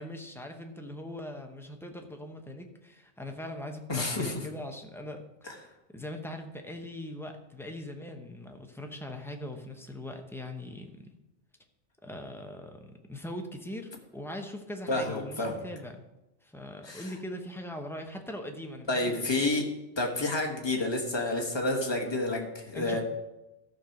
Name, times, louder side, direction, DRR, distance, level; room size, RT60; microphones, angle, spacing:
voice 1, 0.0-5.6 5.9-11.1 12.0-16.0 16.4-19.4 22.7-23.0, left 1 dB, ahead, 3 dB, 0.8 m, -41 dB
voice 2, 3.9-4.3 5.5-5.6 14.9-15.5 16.8-17.1 18.9-19.6 20.0-23.0, left 2 dB, 25° left, 1 dB, 1.4 m, -29 dB
13.5 x 4.6 x 5.9 m, 0.99 s
omnidirectional pair, 1.2 m